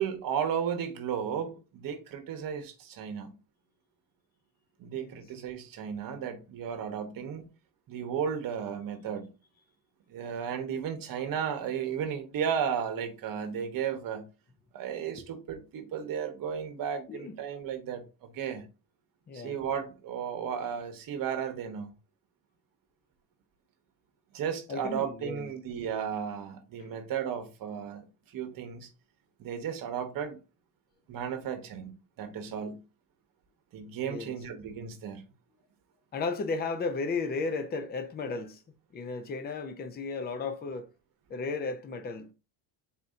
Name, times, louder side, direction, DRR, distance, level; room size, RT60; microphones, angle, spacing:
voice 1, 0.0-3.3 4.8-7.5 7.9-9.3 10.1-14.3 14.7-18.7 19.3-21.9 24.3-28.9 29.4-30.4 31.1-32.8 33.7-35.2, right 8 dB, 50° right, 1.0 m, -34 dB
voice 2, 17.1-17.4 19.3-19.6 24.7-25.5 34.1-34.4 36.1-38.6 38.9-40.9 41.3-42.3, left 4 dB, 25° left, 0.5 m, -34 dB
4.3 x 2.7 x 3.6 m
cardioid pair, 145°, 44 cm